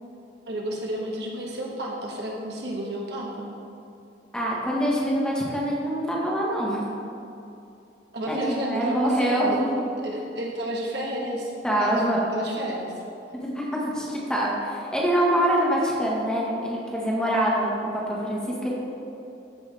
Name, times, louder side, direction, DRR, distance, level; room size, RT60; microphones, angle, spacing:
voice 1, 0.5-3.5 8.1-9.6 10.0-11.5 11.8-12.9, right 1 dB, 65° right, -2 dB, 1.3 m, -31 dB
voice 2, 4.3-6.8 8.3-9.8 11.6-12.3 13.4-13.7 13.9-18.7, right 1 dB, 5° left, -4 dB, 1.3 m, -25 dB
13.5 x 5.6 x 3.4 m, 2.8 s
head